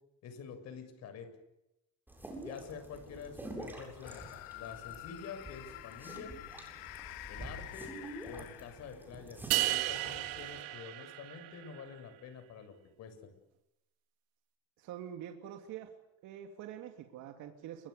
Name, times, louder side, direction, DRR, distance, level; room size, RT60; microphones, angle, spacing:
voice 1, 0.2-1.3 2.4-6.3 7.3-8.0 8.2-13.2, left 6 dB, 45° left, 8 dB, 7.4 m, -48 dB
sound 1, 2.1-10.6, right 1 dB, 5° right, 7.9 m, -48 dB
sound 2, 4.0-9.2, left 17 dB, 90° left, 2.1 m, -48 dB
sound 3, 9.5-11.8, right 17 dB, 90° right, 2.9 m, -34 dB
voice 2, 14.8-16.0 16.2-17.9, right 10 dB, 55° right, 5 dB, 2.9 m, -45 dB
29.5 x 24.5 x 7.0 m, 0.87 s
cardioid pair, 155°, 35 cm